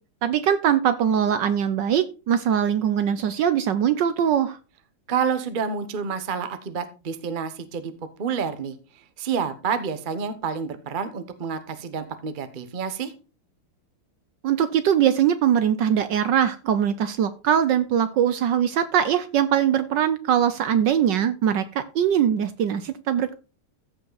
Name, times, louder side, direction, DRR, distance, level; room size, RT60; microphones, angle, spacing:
voice 1, 0.2-4.6 14.4-23.3, right 9 dB, 70° right, 12 dB, 1.2 m, -22 dB
voice 2, 5.1-7.9 8.2-8.8 9.2-13.1, right 6 dB, 40° right, 11 dB, 0.7 m, -28 dB
14.5 x 5.6 x 4.0 m, 0.32 s
omnidirectional pair, 2.4 m